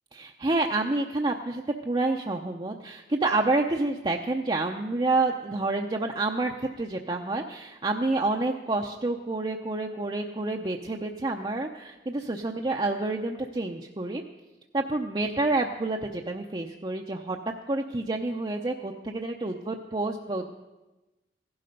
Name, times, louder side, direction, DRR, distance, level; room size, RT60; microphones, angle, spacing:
voice 1, 0.1-14.2 14.7-17.4 17.7-20.5, right 2 dB, 25° right, 1 dB, 0.6 m, -28 dB
16.0 x 12.0 x 5.3 m, 1.1 s
head